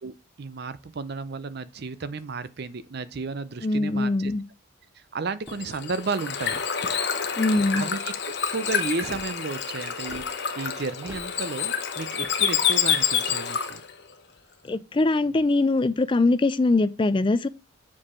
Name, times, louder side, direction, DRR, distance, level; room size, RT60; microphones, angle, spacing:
voice 1, 0.0-4.3 5.1-6.6 7.8-8.1 8.5-13.8, right 4 dB, 50° right, 0.5 m, -33 dB
voice 2, 3.6-4.4 7.4-7.8 14.6-17.5, left 2 dB, 25° left, 0.3 m, -22 dB
sound 1, 5.4-5.8 6.4-6.9 7.5-7.9 9.0-9.3 10.0-10.3 11.0-11.3, right 1 dB, 10° right, 1.1 m, -43 dB
Bird / Water, 5.5-13.9, left 8 dB, 55° left, 1.0 m, -28 dB
7.4 x 4.7 x 4.3 m
head